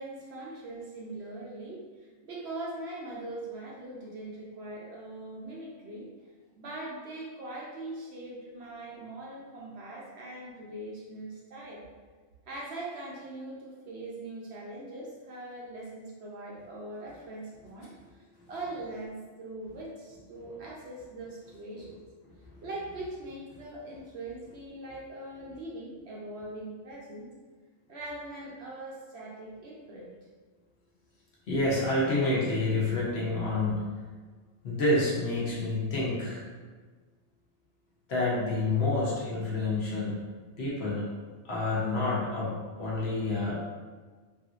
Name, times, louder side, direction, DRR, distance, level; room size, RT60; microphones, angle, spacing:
voice 1, 0.0-6.1 6.5-11.8 12.5-22.0 22.6-27.3 27.9-30.1, right 2 dB, 65° right, -4 dB, 0.8 m, -41 dB
voice 2, 31.5-33.9 34.6-36.4 38.1-40.1 40.6-41.1 41.4-43.6, left 2 dB, 60° left, -5 dB, 0.9 m, -28 dB
3.3 x 2.6 x 2.3 m, 1.5 s
omnidirectional pair, 1.4 m